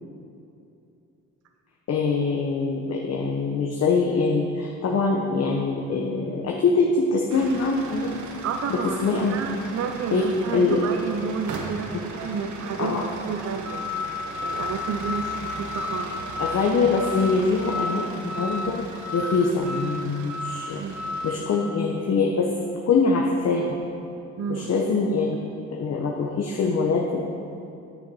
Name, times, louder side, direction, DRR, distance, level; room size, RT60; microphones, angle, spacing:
voice 1, 1.9-8.2 8.7-9.4 10.1-10.2 10.5-10.9 12.8-13.0 16.4-18.8 19.1-20.8 21.2-22.5 22.9-23.8 24.5-25.4 25.7-27.2, left 4 dB, 55° left, -1 dB, 1.0 m, -23 dB
sound 1, 7.3-21.4, left 1 dB, 75° right, 1.2 m, -34 dB
voice 2, 8.4-9.0 9.3-13.0 13.2-13.8 14.4-16.2 20.8-21.0 24.4-24.7, right 6 dB, 55° right, 5 dB, 0.6 m, -30 dB
9.1 x 6.7 x 5.5 m, 2.6 s
cardioid pair, 90°, 30 cm